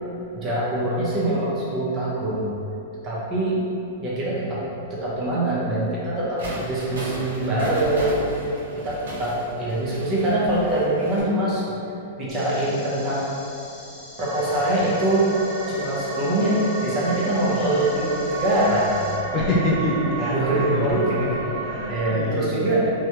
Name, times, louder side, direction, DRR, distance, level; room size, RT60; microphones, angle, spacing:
voice 1, 0.0-2.5 3.0-3.6 4.0-8.2 8.7-11.7 12.2-13.3 14.2-15.3 15.7-19.0 20.2-21.5 21.9-22.9, right 1 dB, 25° right, -8 dB, 0.8 m, -24 dB
sound 1, 6.4-11.2, right 1 dB, 80° right, 0.9 m, -35 dB
sound 2, 12.3-19.1, left 1 dB, 10° left, 1.0 m, -44 dB
sound 3, 14.2-22.1, right 2 dB, 55° right, 0.5 m, -31 dB
voice 2, 17.4-17.9 19.3-22.7, left 1 dB, 30° left, -5 dB, 0.5 m, -26 dB
3.1 x 2.2 x 2.9 m, 2.7 s
hypercardioid pair, 140°, 0 cm